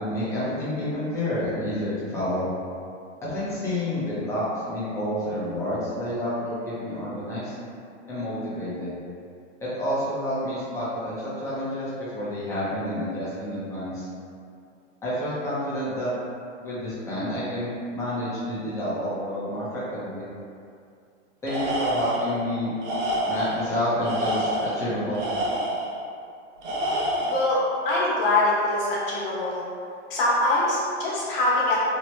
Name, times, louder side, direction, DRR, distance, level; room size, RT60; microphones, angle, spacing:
voice 1, 0.0-2.5 3.2-7.6 8.1-8.9 9.6-14.1 15.0-16.1 16.6-20.3 21.4-22.7 23.2-25.5, left 1 dB, 10° left, -11 dB, 0.5 m, -29 dB
Tools, 21.5-22.4 22.8-23.6 24.0-25.9 26.6-27.6, equal, 70° right, 0.8 m, -27 dB
voice 2, 27.2-27.6 27.8-29.6 30.1-31.8, left 2 dB, 45° left, -7 dB, 1.1 m, -23 dB
3.0 x 2.2 x 3.1 m, 2.4 s
hypercardioid pair, 150°, 37 cm